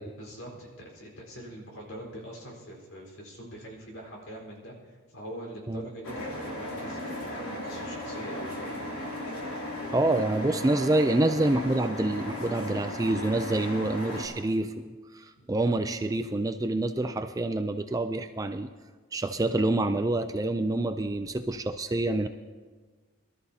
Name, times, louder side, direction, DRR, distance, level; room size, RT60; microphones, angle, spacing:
voice 1, 0.2-8.9 15.4-15.5, equal, 60° left, -2 dB, 4.4 m, -43 dB
sound 1, 6.0-14.3, left 1 dB, 75° left, 2.9 m, -36 dB
voice 2, 9.9-14.9 15.1-18.7 19.1-22.3, right 2 dB, 15° right, 8 dB, 0.3 m, -27 dB
23.0 x 13.0 x 2.8 m, 1.4 s
head